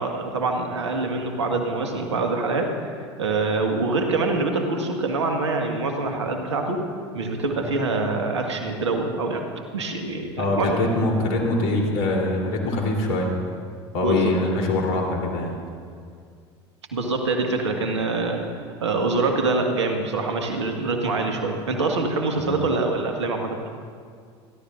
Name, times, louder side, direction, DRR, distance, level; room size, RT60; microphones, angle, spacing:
voice 1, 0.0-2.7 3.0-6.8 7.1-9.4 9.7-10.9 14.0-14.3 16.9-18.5 18.8-23.6, right 3 dB, 85° right, 3 dB, 1.6 m, -25 dB
voice 2, 10.4-13.3 13.9-15.5 22.4-22.5, left 2 dB, 70° left, 0 dB, 3.3 m, -23 dB
27.0 x 12.0 x 2.5 m, 2.1 s
hypercardioid pair, 80°, 14 cm